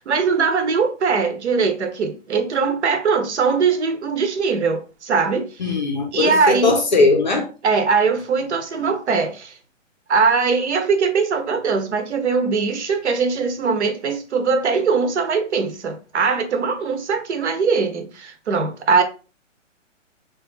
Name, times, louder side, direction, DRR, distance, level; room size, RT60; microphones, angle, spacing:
voice 1, 0.0-5.5 6.1-6.8 7.6-9.5 10.1-19.0, right 5 dB, 60° right, 0.8 m, -21 dB
voice 2, 5.6-7.5, left 3 dB, 35° left, 0.6 m, -19 dB
4.7 x 2.3 x 3.2 m
hypercardioid pair, 170°, 38 cm